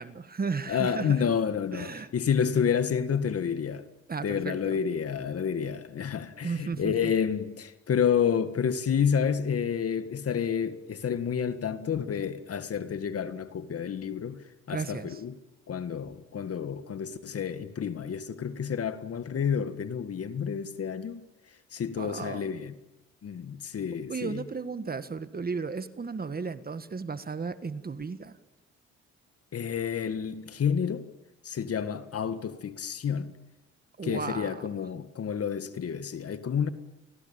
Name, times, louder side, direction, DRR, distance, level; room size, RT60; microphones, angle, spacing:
voice 1, 0.0-1.2 1.7-2.1 4.1-4.8 6.4-7.1 14.7-15.2 22.0-22.5 24.1-28.3 34.0-34.7, right 5 dB, 30° right, 1.6 m, -34 dB
voice 2, 0.7-3.8 4.2-14.4 14.7-15.4 15.7-21.2 21.7-22.7 23.2-24.4 29.5-31.1 31.4-33.3 34.0-36.7, left 7 dB, 50° left, 2.0 m, -29 dB
29.5 x 19.5 x 9.0 m
cardioid pair, 90°, 30 cm